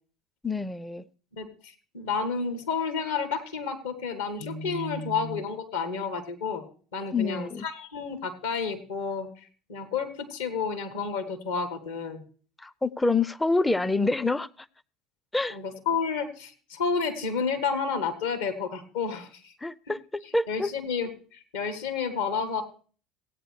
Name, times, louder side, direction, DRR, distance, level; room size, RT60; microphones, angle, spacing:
voice 1, 0.4-1.1 7.1-7.7 12.6-14.5 15.3-15.6 19.6-20.0 20.3-20.7, left 3 dB, 10° left, 17 dB, 0.4 m, -26 dB
voice 2, 1.4-6.7 6.9-12.2 15.5-19.5 20.5-22.6, left 5 dB, 65° left, 6 dB, 1.3 m, -31 dB
16.5 x 8.8 x 3.2 m, 0.41 s
figure-of-eight pair, 65°, 0 cm